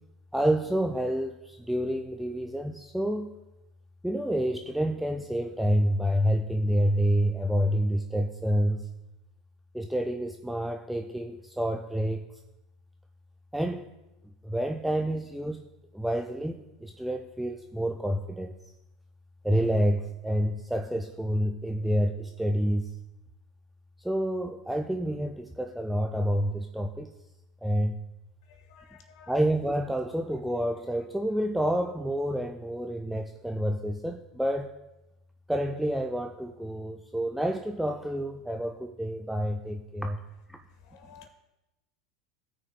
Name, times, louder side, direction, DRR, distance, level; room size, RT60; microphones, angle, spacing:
voice 1, 0.3-3.3 4.0-8.9 9.7-12.3 13.5-13.9 14.4-15.6 15.9-18.5 19.4-22.9 24.0-27.1 27.6-27.9 29.3-34.8 35.5-40.2 40.5-40.6, equal, 5° right, 3 dB, 0.5 m, -28 dB
voice 2, 28.5-29.3 40.8-41.3, left 7 dB, 60° left, 6 dB, 1.4 m, -53 dB
17.5 x 6.3 x 2.2 m, 0.96 s
hypercardioid pair, 85°, 3 cm